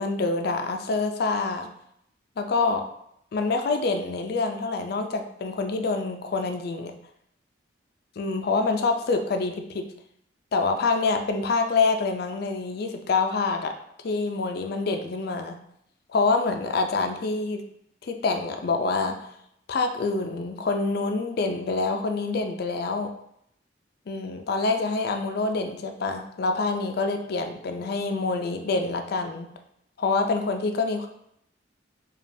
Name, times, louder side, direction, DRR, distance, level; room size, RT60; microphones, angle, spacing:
voice 1, 0.0-1.7 2.4-2.9 3.3-6.9 8.2-9.9 10.5-13.7 14.0-15.6 16.1-17.6 18.0-19.2 19.7-23.1 24.1-29.5 30.0-31.1, left 3 dB, 55° left, 5 dB, 0.4 m, -26 dB
5.1 x 2.3 x 2.6 m, 0.74 s
head